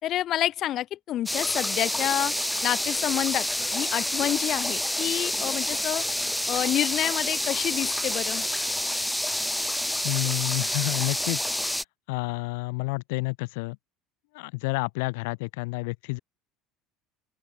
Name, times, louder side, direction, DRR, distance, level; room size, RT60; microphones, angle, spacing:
voice 1, 0.0-2.3 2.6-3.5 3.7-6.0 6.5-8.4, left 13 dB, 35° left, 2.5 m, -28 dB
sound 1, 1.3-11.8, left 1 dB, ahead, 0.9 m, -28 dB
voice 2, 10.0-11.4 12.1-13.8 14.3-16.2, left 27 dB, 85° left, 0.8 m, -29 dB
open air
cardioid pair, 170°, 0 cm